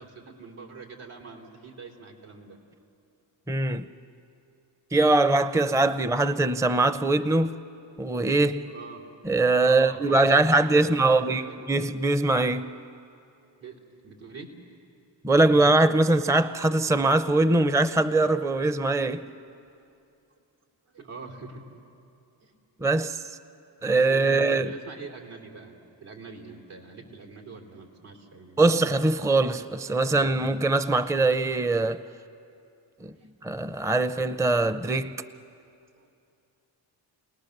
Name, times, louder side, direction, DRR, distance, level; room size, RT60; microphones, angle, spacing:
voice 1, 0.0-2.6 8.7-9.0 9.6-11.7 13.6-14.5 20.9-21.6 22.4-22.5 24.0-28.7 33.0-33.6 36.0-36.1, right 4 dB, 80° right, 3.6 m, -44 dB
voice 2, 3.5-3.9 4.9-7.6 8.0-8.7 9.2-12.7 15.2-19.3 22.8-23.2 23.8-24.7 28.6-32.0 33.0-33.1 33.4-35.2, right 2 dB, 5° right, 0.6 m, -22 dB
30.0 x 19.0 x 6.7 m
supercardioid pair, 55°, 48 cm